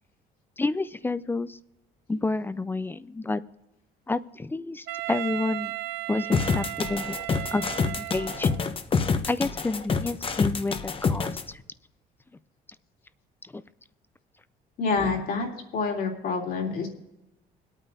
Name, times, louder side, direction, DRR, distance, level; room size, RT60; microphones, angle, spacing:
voice 1, 0.6-1.6 2.1-3.4 4.1-5.7 6.1-7.2 7.5-8.5 9.3-11.6 13.4-13.6, left 3 dB, 10° left, 15 dB, 0.4 m, -29 dB
Wind instrument woodwind instrument, 4.9-8.7, right 20 dB, 85° right, 0.5 m, -35 dB
sound 1, 6.3-11.4, left 5 dB, 30° left, 0.8 m, -27 dB
voice 2, 14.8-15.5 15.7-16.9, left 4 dB, 60° left, 1 dB, 3.0 m, -27 dB
26.0 x 8.9 x 2.7 m, 0.93 s
cardioid pair, 110°, 17 cm